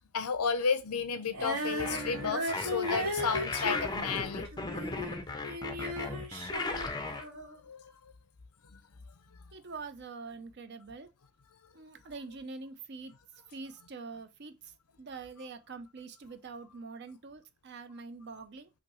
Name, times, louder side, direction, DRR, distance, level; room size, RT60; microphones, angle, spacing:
voice 1, 0.1-4.5 7.7-7.8 8.7-8.8, left 5 dB, 90° left, 0.6 m, -32 dB
Female singing, 1.3-5.2 5.4-7.6, equal, 80° right, 2.0 m, -36 dB
sound 1, 1.8-7.2, left 3 dB, 20° left, 0.5 m, -36 dB
voice 2, 9.5-11.1 11.7-13.1 13.5-14.7 15.0-18.7, right 4 dB, 50° right, 0.5 m, -45 dB
5.7 x 2.7 x 3.0 m
head